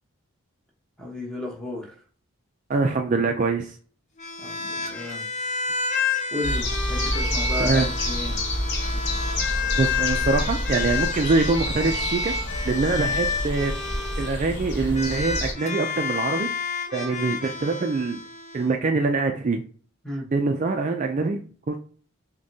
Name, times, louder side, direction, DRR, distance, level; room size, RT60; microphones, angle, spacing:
voice 1, 1.0-1.9 4.4-5.3 6.3-8.4 20.0-20.3, left 1 dB, 5° left, 1.0 m, -33 dB
voice 2, 2.7-3.8 7.6-7.9 9.8-12.3 12.6-13.7 14.2-16.5 16.9-18.2 18.5-19.6 20.3-21.4 21.7-21.8, right 3 dB, 35° right, 0.3 m, -24 dB
sound 1, 4.2-14.3 14.9-18.7, left 4 dB, 35° left, 0.7 m, -30 dB
sound 2, 6.4-15.5, left 1 dB, 50° left, 1.0 m, -28 dB
6.1 x 2.2 x 2.7 m
head